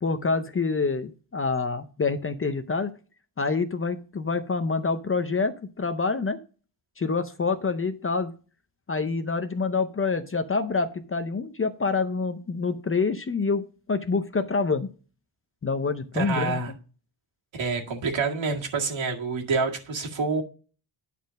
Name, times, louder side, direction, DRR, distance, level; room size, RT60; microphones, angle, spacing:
voice 1, 0.0-2.9 3.4-6.4 7.0-8.4 8.9-14.9 15.6-16.7, left 4 dB, 30° left, 9 dB, 0.6 m, -27 dB
voice 2, 16.1-16.7 17.5-20.4, right 4 dB, 70° right, 1 dB, 2.0 m, -27 dB
10.0 x 4.2 x 5.2 m, 0.36 s
wide cardioid pair, 155°, 48 cm